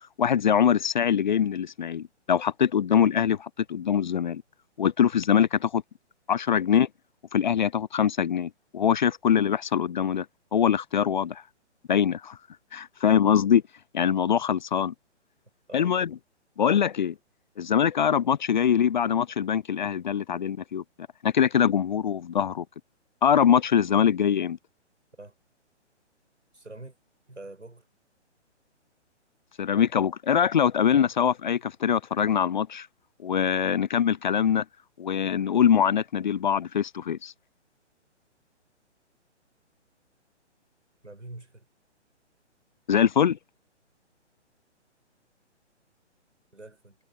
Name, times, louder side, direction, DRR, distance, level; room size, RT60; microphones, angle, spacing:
voice 1, 0.2-4.4 4.8-5.8 6.3-6.9 7.3-10.3 10.5-11.4 11.9-12.4 12.7-13.6 13.9-14.9 15.7-16.2 16.6-17.1 17.6-20.8 21.2-22.6 23.2-24.6 29.6-32.9 33.2-34.6 35.0-37.3 42.9-43.4, left 8 dB, 40° left, 0.5 m, -23 dB
voice 2, 26.5-27.0 27.3-27.9 30.9-31.1 41.0-41.7 46.5-47.0, right 2 dB, 85° right, 7.9 m, -44 dB
figure-of-eight pair, 135°, 36 cm